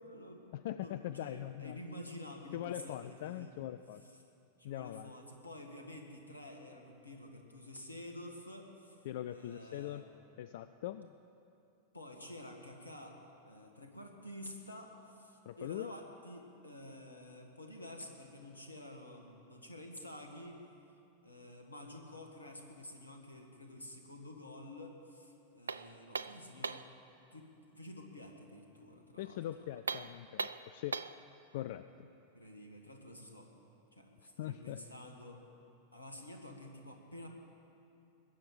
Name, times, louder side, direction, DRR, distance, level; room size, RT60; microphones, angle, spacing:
voice 1, 0.0-3.6 4.0-4.2 4.6-9.0 9.3-10.1 11.9-13.2 13.4-20.6 21.2-26.9 27.3-29.7 31.9-32.0 32.3-33.5 33.9-35.4 35.9-37.3, left 1 dB, 80° left, 3 dB, 1.7 m, -50 dB
voice 2, 0.5-1.8 2.5-4.0 4.6-5.1 9.0-10.1 10.4-11.1 15.4-15.9 29.2-31.0 31.5-32.1 34.4-34.8, left 12 dB, 55° left, 12 dB, 0.3 m, -42 dB
sound 1, 25.7-27.0 29.8-31.2, right 4 dB, 75° right, 0.3 m, -39 dB
20.0 x 7.6 x 8.4 m, 2.7 s
figure-of-eight pair, 90°, 0 cm